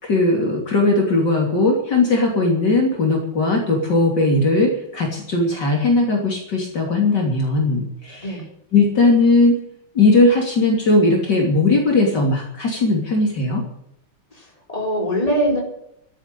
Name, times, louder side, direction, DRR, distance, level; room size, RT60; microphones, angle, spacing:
voice 1, 0.0-8.2 8.7-9.6 10.0-13.6, left 2 dB, 55° left, 0 dB, 3.6 m, -18 dB
voice 2, 14.3-15.6, equal, 15° left, -1 dB, 4.5 m, -22 dB
13.0 x 10.0 x 9.7 m, 0.75 s
omnidirectional pair, 2.3 m